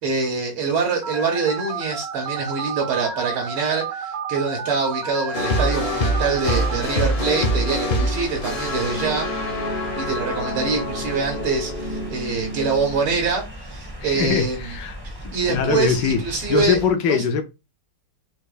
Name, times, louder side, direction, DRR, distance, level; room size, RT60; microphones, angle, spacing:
voice 1, 0.0-9.3 10.0-14.6 15.0-16.8 17.0-17.2, right 4 dB, 80° right, 2.0 m, -24 dB
Telephone, 1.0-6.8, right 5 dB, 65° right, 1.4 m, -31 dB
sound 1, 5.3-13.5, equal, 45° left, 0.7 m, -26 dB
sound 2, 5.5-16.9, right 1 dB, 20° right, 0.6 m, -38 dB
voice 2, 14.0-15.0 15.2-17.4, left 7 dB, 75° left, 1.1 m, -22 dB
4.5 x 2.4 x 4.8 m
omnidirectional pair, 2.4 m